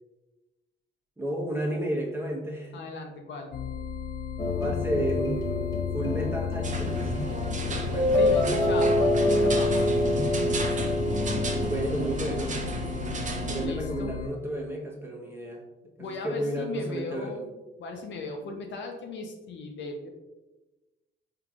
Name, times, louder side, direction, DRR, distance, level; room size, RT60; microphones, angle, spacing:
voice 1, 1.2-2.8 4.6-7.3 7.7-8.2 11.5-12.6 13.5-15.6 16.1-17.5, right 1 dB, 10° right, -1 dB, 0.9 m, -32 dB
voice 2, 2.7-3.5 8.1-10.0 13.6-14.1 16.0-17.5 17.8-20.1, left 3 dB, 65° left, 3 dB, 0.8 m, -37 dB
sound 1, 3.5-14.3, left 7 dB, 45° left, 0.4 m, -36 dB
sound 2, 4.4-11.7, left 2 dB, 20° left, 1.3 m, -26 dB
sound 3, 6.6-13.7, right 2 dB, 40° right, 0.6 m, -34 dB
4.4 x 3.8 x 2.4 m, 1.1 s
cardioid pair, 90°, 20 cm